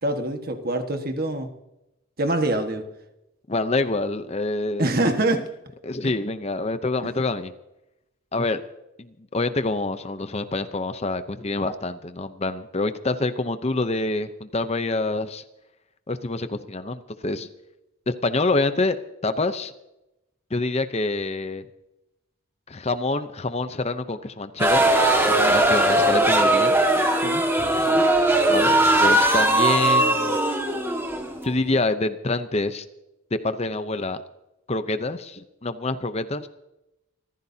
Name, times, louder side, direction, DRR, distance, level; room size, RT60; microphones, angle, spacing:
voice 1, 0.0-1.5 2.2-2.9 4.8-5.5 6.0-6.1 7.0-7.1 27.2-27.4 27.8-28.0, right 1 dB, 45° right, 6 dB, 1.5 m, -25 dB
voice 2, 3.5-4.9 5.8-7.5 8.3-8.6 9.0-15.4 16.1-17.5 18.1-19.0 19.2-19.7 20.5-21.7 22.7-24.9 25.3-26.8 28.5-30.4 31.4-32.8 33.3-34.2 34.7-36.5, left 2 dB, 30° left, 10 dB, 0.7 m, -26 dB
sound 1, 24.6-31.8, right 1 dB, 10° right, 1.7 m, -19 dB
26.5 x 15.0 x 2.8 m, 0.91 s
head